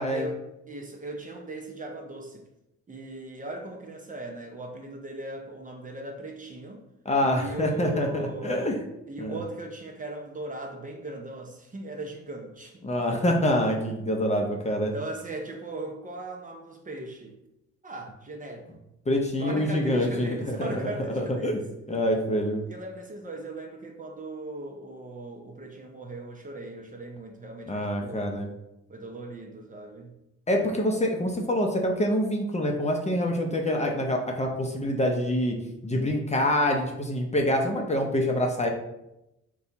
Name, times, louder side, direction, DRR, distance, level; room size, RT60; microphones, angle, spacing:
voice 1, 0.1-2.4 2.9-6.8 7.3-8.8 9.1-12.8 14.9-17.4 17.8-18.7 19.4-21.6 22.7-28.3 28.9-30.1, right 2 dB, 25° right, 2 dB, 0.7 m, -38 dB
voice 2, 7.0-8.7 9.2-9.4 12.8-14.9 19.1-20.8 21.1-21.6 21.9-22.6 27.7-28.5 30.5-35.6 35.8-38.7, left 1 dB, 20° left, 2 dB, 0.6 m, -26 dB
4.1 x 2.3 x 3.9 m, 0.89 s
cardioid pair, 90°, 30 cm